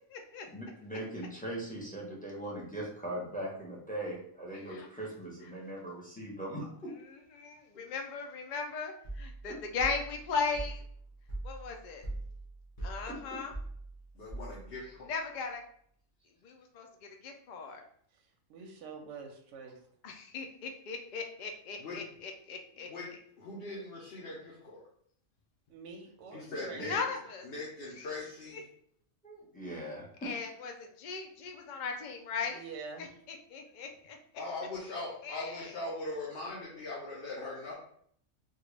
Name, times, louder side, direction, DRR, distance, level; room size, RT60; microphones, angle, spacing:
voice 1, 0.5-7.3 7.5-7.7 9.5-9.6 13.1-13.4 26.5-26.9 29.2-30.4, right 1 dB, 10° left, -4 dB, 0.6 m, -40 dB
voice 2, 7.4-10.8 11.4-12.0 12.8-13.5 15.1-15.6 16.4-16.9 17.2-17.8 20.0-22.9 26.9-27.4 30.2-32.6 33.5-33.9 35.2-35.7, left 5 dB, 75° left, 3 dB, 0.4 m, -37 dB
sound 1, 9.0-14.9, right 2 dB, 30° left, 1.1 m, -42 dB
voice 3, 14.1-15.1 21.8-22.0 22.8-24.8 26.3-27.0 27.4-28.6 34.3-37.7, left 2 dB, 55° left, -5 dB, 0.9 m, -40 dB
voice 4, 18.1-19.8 25.7-27.1 32.5-33.1, right 4 dB, 70° right, 3 dB, 0.8 m, -46 dB
3.7 x 2.3 x 3.2 m, 0.64 s
omnidirectional pair, 1.4 m